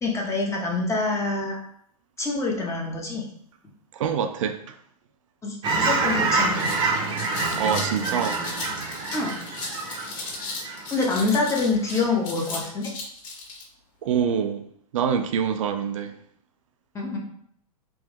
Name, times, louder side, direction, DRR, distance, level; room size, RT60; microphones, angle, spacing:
voice 1, 0.0-1.6 2.2-3.3 5.4-6.7 9.1-9.4 10.9-12.9 16.9-17.2, left 3 dB, 15° left, -1 dB, 0.9 m, -26 dB
voice 2, 3.9-4.8 7.6-8.4 14.0-14.7 14.9-16.2, right 7 dB, 55° right, 7 dB, 0.4 m, -25 dB
Fowl / Chirp tweet, 5.6-11.5 11.9-12.1, right 3 dB, 25° right, 0.8 m, -27 dB
sound 1, 6.3-13.6, left 3 dB, 45° left, 1.5 m, -36 dB
3.5 x 3.1 x 3.0 m, 0.65 s
figure-of-eight pair, 105°, 19 cm